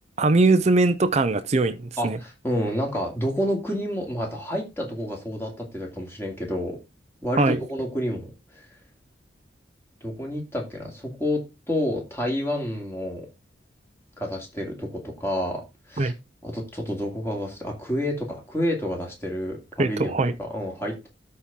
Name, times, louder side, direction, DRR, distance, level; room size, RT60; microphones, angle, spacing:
voice 1, 0.2-2.2 7.4-7.6 16.0-16.1 19.8-20.3, right 3 dB, 35° right, 0.6 m, -21 dB
voice 2, 2.0-6.8 7.2-8.6 10.0-11.4 11.7-13.3 14.2-15.6 15.9-16.1 16.4-20.1 20.4-21.1, equal, 15° left, 2.6 m, -29 dB
13.0 x 4.3 x 3.7 m
head